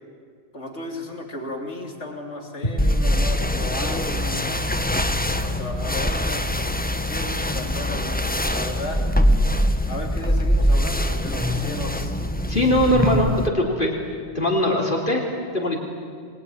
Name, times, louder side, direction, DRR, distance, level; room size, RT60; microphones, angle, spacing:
voice 1, 0.5-4.7 5.4-6.5 7.1-9.0 9.9-12.1, left 2 dB, 80° left, 2 dB, 3.5 m, -34 dB
sound 1, 2.8-13.5, equal, 10° left, 1.2 m, -23 dB
voice 2, 12.5-13.9 14.3-15.8, left 1 dB, 50° left, 0 dB, 3.2 m, -21 dB
26.5 x 20.5 x 10.0 m, 2.1 s
omnidirectional pair, 1.2 m